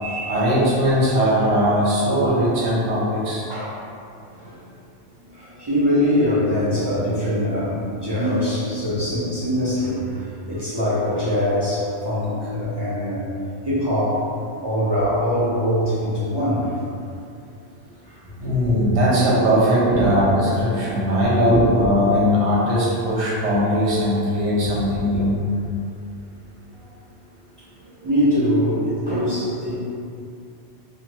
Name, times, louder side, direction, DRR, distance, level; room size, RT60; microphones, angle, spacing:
voice 1, 0.0-3.5 18.4-25.3, equal, 65° right, -6 dB, 1.0 m, -19 dB
voice 2, 5.2-13.3 13.6-14.3 14.6-16.9 18.1-18.2 19.9-20.2 21.5-21.7 24.7-24.8 25.1-25.3 27.8-29.7, equal, 35° right, -11 dB, 0.4 m, -23 dB
2.5 x 2.4 x 3.0 m, 2.5 s
omnidirectional pair, 1.3 m